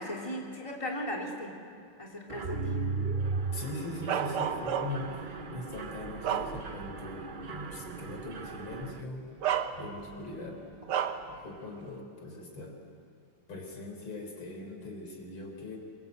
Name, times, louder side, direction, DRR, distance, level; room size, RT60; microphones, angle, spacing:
voice 1, 0.0-1.6 2.0-2.9, left 1 dB, 15° left, -2 dB, 3.5 m, -37 dB
Mechanisms, 2.3-9.0, right 4 dB, 65° right, 0.5 m, -37 dB
voice 2, 3.5-9.2 9.8-10.6 11.2-12.8 13.5-15.8, left 2 dB, 75° left, 2 dB, 5.0 m, -41 dB
Bark, 4.1-5.2 5.7-7.0 7.4-7.6 8.7-8.9 9.4-10.2 10.9-11.3, right 9 dB, 85° right, 2.1 m, -32 dB
28.0 x 24.0 x 8.2 m, 2.5 s
omnidirectional pair, 2.3 m